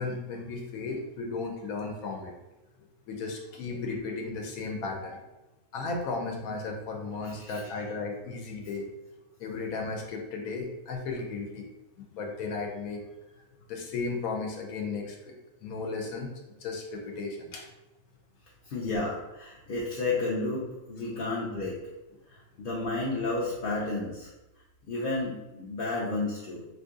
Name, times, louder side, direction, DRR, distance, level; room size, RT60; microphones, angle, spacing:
voice 1, 0.0-2.3 3.1-5.3 5.7-8.9 9.4-11.7 12.0-13.0 13.7-15.4 15.6-16.3 16.6-17.7 18.9-19.0, left 3 dB, 85° left, 1 dB, 1.0 m, -35 dB
voice 2, 18.7-21.8 22.3-24.3 24.9-26.7, left 2 dB, 60° left, -6 dB, 0.6 m, -32 dB
2.7 x 2.5 x 3.6 m, 1.0 s
omnidirectional pair, 1.5 m